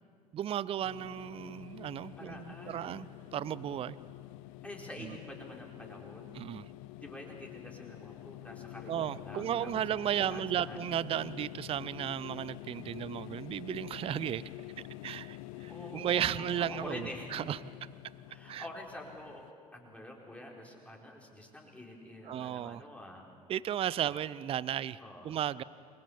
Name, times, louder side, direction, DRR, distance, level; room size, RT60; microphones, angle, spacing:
voice 1, 0.3-3.1 3.3-4.0 5.0-5.1 6.3-6.6 8.9-14.4 15.0-17.6 18.5-18.6 22.3-22.8 23.5-25.0 25.2-25.6, right 10 dB, 30° right, 19 dB, 0.6 m, -34 dB
sound 1, 0.8-19.5, left 17 dB, 55° left, 0.6 m, -47 dB
voice 2, 2.2-3.1 4.6-6.4 7.0-9.7 10.3-10.8 15.7-17.3 18.3-23.3 24.1-24.2 25.0-25.4, left 1 dB, 5° left, -1 dB, 4.5 m, -47 dB
29.0 x 22.5 x 7.2 m, 2.2 s
figure-of-eight pair, 70°, 20 cm